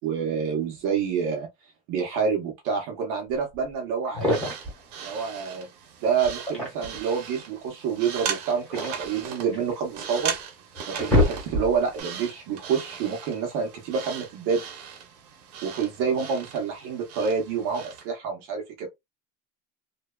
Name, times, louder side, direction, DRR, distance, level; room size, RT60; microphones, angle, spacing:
voice 1, 0.0-1.5 1.9-4.3 5.0-5.7 6.0-10.3 11.0-14.6 15.6-18.9, right 6 dB, 50° right, 0.7 m, -28 dB
sound 1, 3.6-3.7 4.0-4.8 6.2-7.1 8.3-9.7 10.3-10.4 10.7-11.9, left 1 dB, 5° left, 1.2 m, -26 dB
sound 2, 4.2-18.1, right 8 dB, 85° right, 0.8 m, -38 dB
2.7 x 2.2 x 2.2 m
cardioid pair, 175°, 20 cm